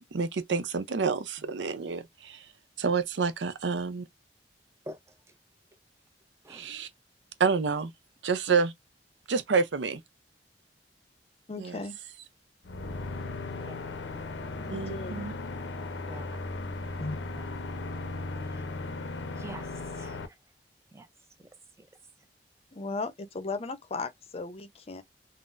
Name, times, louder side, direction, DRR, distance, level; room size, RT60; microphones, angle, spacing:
voice 1, 0.0-2.4 2.8-4.1 6.5-6.9 7.4-7.9 8.2-8.7 9.3-10.0 11.6-11.8 14.7-15.3, right 5 dB, 90° right, 0.6 m, -28 dB
voice 2, 11.5-12.0 14.6-15.3 17.0-17.2 22.7-25.0, left 3 dB, 35° left, 0.6 m, -36 dB
sound 1, 12.6-20.3, left 3 dB, 85° left, 0.6 m, -37 dB
voice 3, 13.5-14.2 16.1-16.4 17.4-17.5 18.3-18.6 19.4-19.7 20.0-20.3 20.9-21.1 21.4-21.5 21.8-21.9, right 1 dB, 15° right, 0.5 m, -46 dB
3.8 x 2.0 x 2.5 m
head